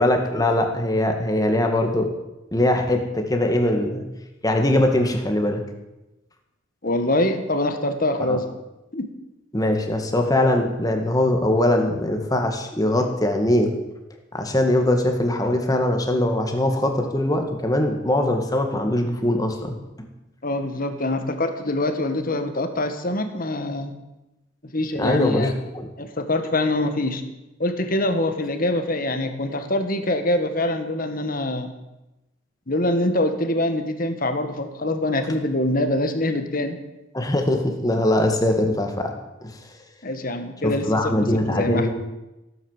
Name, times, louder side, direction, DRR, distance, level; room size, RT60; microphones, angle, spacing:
voice 1, 0.0-2.1 2.5-4.0 4.4-5.6 8.2-8.4 9.5-13.7 14.3-20.1 24.9-25.9 37.1-39.1 39.4-39.6 40.6-41.9, left 1 dB, 20° left, 4 dB, 1.9 m, -21 dB
voice 2, 6.8-8.6 8.9-9.1 20.4-24.0 24.7-25.5 26.0-27.2 27.6-31.7 32.7-36.8 40.0-40.9 41.2-41.9, left 1 dB, 45° left, 7 dB, 1.6 m, -24 dB
16.0 x 9.4 x 7.4 m, 0.99 s
head